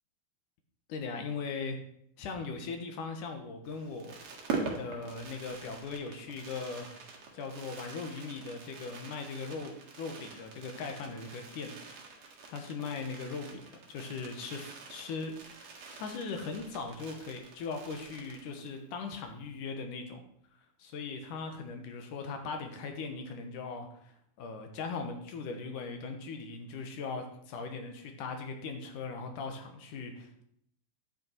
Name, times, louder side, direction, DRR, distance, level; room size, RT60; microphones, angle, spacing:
voice 1, 0.9-1.8 2.2-4.2 4.8-6.9 7.3-11.7 12.5-13.6 13.9-15.3 16.0-20.2 20.8-30.4, left 4 dB, 80° left, 5 dB, 2.9 m, -39 dB
Fireworks, 3.7-18.8 19.1-19.2 19.4-19.7, right 4 dB, 60° right, 2.7 m, -44 dB
10.5 x 8.5 x 4.6 m, 0.70 s
omnidirectional pair, 3.6 m